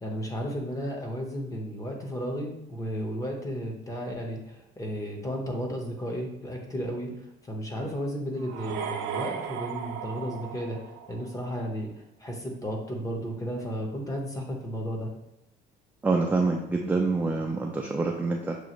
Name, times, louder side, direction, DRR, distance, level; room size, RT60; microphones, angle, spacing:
voice 1, 0.0-11.9 12.2-15.1, equal, 15° left, 1 dB, 0.8 m, -33 dB
sound 1, 8.4-11.4, right 7 dB, 85° right, 0.5 m, -36 dB
voice 2, 16.0-18.5, right 3 dB, 10° right, 1 dB, 0.3 m, -26 dB
6.3 x 2.4 x 2.9 m, 0.88 s
cardioid pair, 130°, 20 cm